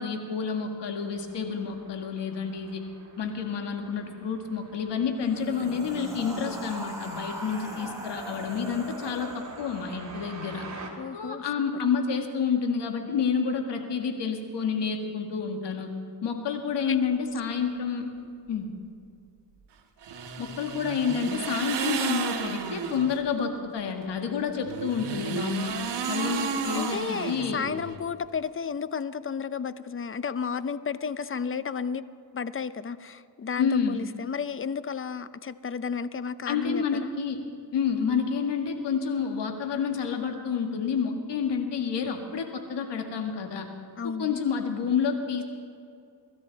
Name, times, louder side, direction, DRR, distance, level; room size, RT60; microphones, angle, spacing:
voice 1, 0.0-2.8 3.2-10.7 11.1-15.9 16.2-18.1 18.5-18.7 20.4-25.8 26.1-27.6 33.6-34.0 36.5-37.4 37.7-43.7 44.2-45.4, left 6 dB, 75° left, 4 dB, 1.9 m, -29 dB
sound 1, 1.1-10.9, right 3 dB, 40° right, 2.6 m, -48 dB
sound 2, 5.2-10.5, right 1 dB, 5° right, 3.7 m, -40 dB
voice 2, 11.0-11.4 16.9-17.0 26.7-32.0 32.3-37.1 44.0-44.4, left 6 dB, 30° left, 15 dB, 0.6 m, -32 dB
sound 3, 20.0-23.2 24.6-28.0, right 6 dB, 80° right, 1.4 m, -32 dB
24.0 x 13.0 x 4.1 m, 2.4 s
cardioid pair, 75°, 42 cm